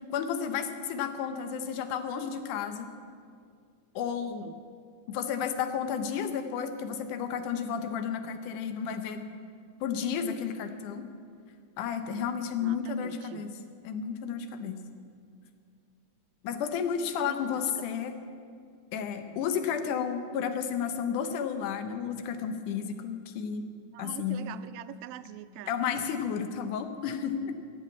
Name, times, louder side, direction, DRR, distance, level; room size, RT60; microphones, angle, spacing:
voice 1, 0.1-2.9 4.0-4.5 5.1-9.2 9.8-11.0 11.8-13.5 13.8-14.8 16.4-18.1 18.9-23.6 24.0-24.5 25.7-27.5, left 7 dB, 85° left, 8 dB, 2.4 m, -32 dB
voice 2, 12.6-13.4 17.1-17.9 23.9-25.8, right 13 dB, 80° right, 13 dB, 1.7 m, -44 dB
15.0 x 7.0 x 8.4 m, 2.2 s
omnidirectional pair, 3.5 m